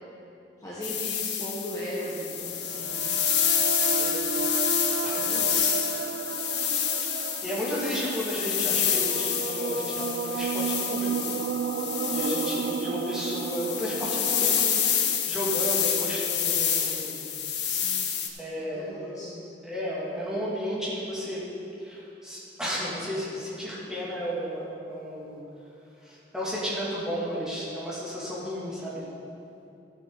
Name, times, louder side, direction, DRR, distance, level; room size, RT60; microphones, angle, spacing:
voice 1, 0.6-2.9 5.1-6.0 17.6-18.1 18.6-19.5, equal, 20° left, -7 dB, 1.3 m, -37 dB
sound 1, 0.8-18.3, left 8 dB, 85° left, 1.0 m, -28 dB
sound 2, 2.1-16.2, right 6 dB, 65° right, 0.3 m, -33 dB
voice 2, 2.7-3.1 4.0-4.4 5.0-5.3 7.1-11.3 12.1-14.7 15.3-17.2 18.4-19.0 19.6-21.4 21.8-25.4 26.0-29.0, equal, 5° right, -8 dB, 2.7 m, -33 dB
13.5 x 8.2 x 4.1 m, 2.7 s
head